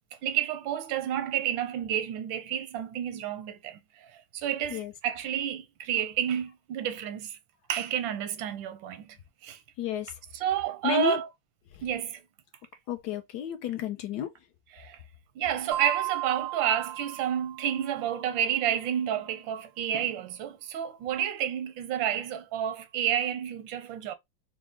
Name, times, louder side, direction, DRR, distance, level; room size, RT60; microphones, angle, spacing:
voice 1, 0.2-7.4 7.7-9.2 9.4-9.6 10.3-11.3 11.8-12.2 14.7-15.0 15.4-24.1, right 10 dB, 85° right, 1.4 m, -30 dB
voice 2, 9.8-10.1 10.8-11.2 12.9-14.3, left 10 dB, 70° left, 1.1 m, -31 dB
sound 1, 15.7-18.2, right 15 dB, 65° right, 0.3 m, -35 dB
4.8 x 2.0 x 3.6 m
omnidirectional pair, 2.0 m